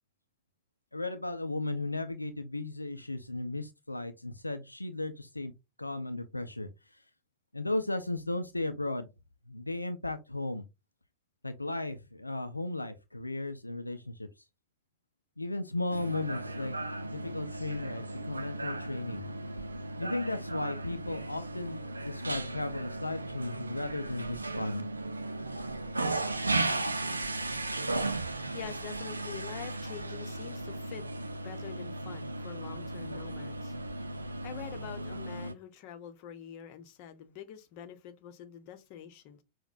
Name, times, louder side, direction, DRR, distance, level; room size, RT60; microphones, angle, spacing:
voice 1, 0.9-5.5 5.8-7.0 7.5-9.1 9.5-10.6 11.4-14.3 15.4-19.2 20.0-24.9, left 2 dB, 85° left, 0.4 m, -35 dB
sound 1, 15.9-35.5, right 2 dB, 80° right, 0.4 m, -36 dB
voice 2, 28.5-31.0 31.4-33.7 34.3-39.4, left 9 dB, 45° left, 0.7 m, -46 dB
5.9 x 2.1 x 2.5 m
figure-of-eight pair, 90°, 0 cm